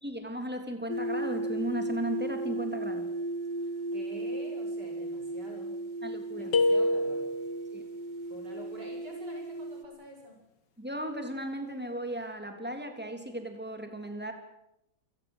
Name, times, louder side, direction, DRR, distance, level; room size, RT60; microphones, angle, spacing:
voice 1, 0.0-3.1 6.0-6.5 7.7-7.9 10.8-14.3, equal, 5° right, 5 dB, 3.4 m, -36 dB
sound 1, 0.9-9.8, right 2 dB, 25° right, 1.6 m, -35 dB
voice 2, 3.9-5.7 6.4-7.3 8.2-10.4, equal, 75° right, 1 dB, 8.2 m, -47 dB
sound 2, 6.5-7.7, left 2 dB, 85° left, 2.5 m, -26 dB
28.0 x 17.5 x 8.2 m, 0.86 s
omnidirectional pair, 1.8 m